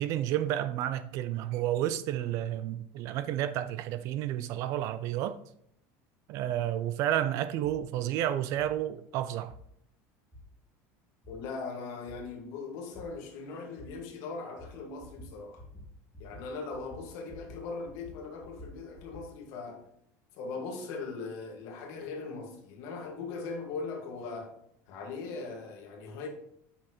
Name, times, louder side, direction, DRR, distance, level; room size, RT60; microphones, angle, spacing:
voice 1, 0.0-5.4 6.3-9.5, right 12 dB, 45° right, 0.4 m, -31 dB
sound 1, 7.6-7.8 8.6-8.7 9.5-9.6 10.3-10.4 11.2-11.3 12.1-12.2 12.9-13.0 13.8-13.9 14.6-14.7 15.0-15.3 15.6-15.9 16.1-16.4 16.7-17.6 17.8-19.2, left 1 dB, 5° left, 2.4 m, -49 dB
voice 2, 11.3-15.6 16.2-19.8 20.3-24.5 24.9-26.3, left 4 dB, 50° left, 1.7 m, -40 dB
8.6 x 5.6 x 3.0 m
cardioid pair, 175°, 7 cm